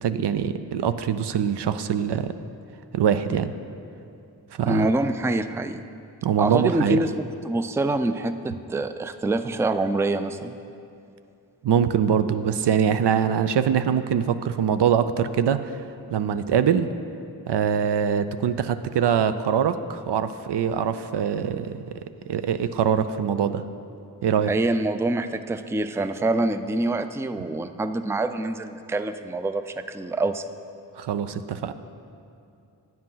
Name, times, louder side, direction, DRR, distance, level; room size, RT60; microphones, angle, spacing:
voice 1, 0.0-2.3 2.9-3.5 4.6-4.9 6.2-7.0 11.6-15.8 16.1-16.9 17.5-21.8 22.3-23.6 24.2-24.5 31.0-31.7, right 8 dB, 75° right, 11 dB, 0.5 m, -23 dB
voice 2, 4.7-5.8 6.4-10.5 24.5-30.4, right 2 dB, 5° right, 10 dB, 0.4 m, -26 dB
9.3 x 7.5 x 5.6 m, 2.6 s
cardioid pair, 45°, 41 cm